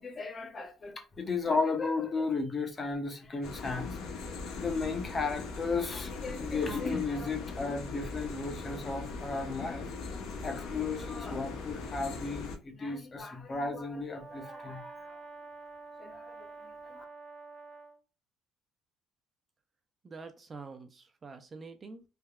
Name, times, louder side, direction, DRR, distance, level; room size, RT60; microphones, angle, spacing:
voice 1, 0.0-4.0 4.6-9.9 10.4-15.2 16.0-17.0, left 4 dB, 25° left, 0.6 m, -34 dB
sound 1, 3.4-12.6, left 4 dB, 70° left, 0.7 m, -40 dB
Brass instrument, 14.1-18.0, right 3 dB, 55° right, 0.7 m, -47 dB
voice 2, 20.0-22.0, right 4 dB, 25° right, 0.4 m, -46 dB
3.4 x 2.2 x 2.2 m
cardioid pair, 135°, 0 cm